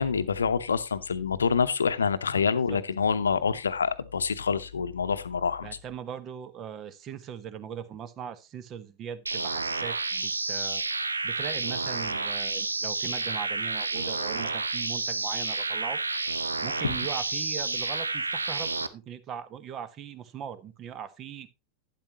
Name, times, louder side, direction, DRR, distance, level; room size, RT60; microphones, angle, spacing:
voice 1, 0.0-5.7, left 6 dB, 70° left, 0.8 m, -26 dB
voice 2, 5.6-10.8 11.2-16.0 16.6-21.5, right 8 dB, 30° right, 1.1 m, -40 dB
sound 1, 9.3-18.9, right 3 dB, 80° right, 0.7 m, -30 dB
12.0 x 10.0 x 3.0 m
figure-of-eight pair, 90°, 0 cm